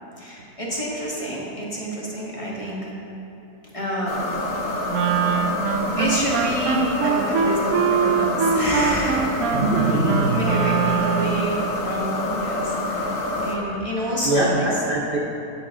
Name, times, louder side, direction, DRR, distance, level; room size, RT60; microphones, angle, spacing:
voice 1, 0.2-2.8 3.7-4.1 4.5-4.7 6.0-9.3 10.3-14.7, equal, 20° left, -6 dB, 2.0 m, -28 dB
sound 1, 4.1-13.6, left 2 dB, 55° left, 1.4 m, -27 dB
Wind instrument woodwind instrument, 4.9-11.5, right 7 dB, 70° right, 1.0 m, -23 dB
voice 2, 9.5-10.5 14.2-15.2, right 2 dB, 45° right, -3 dB, 0.9 m, -22 dB
16.0 x 7.4 x 3.9 m, 2.9 s
omnidirectional pair, 1.6 m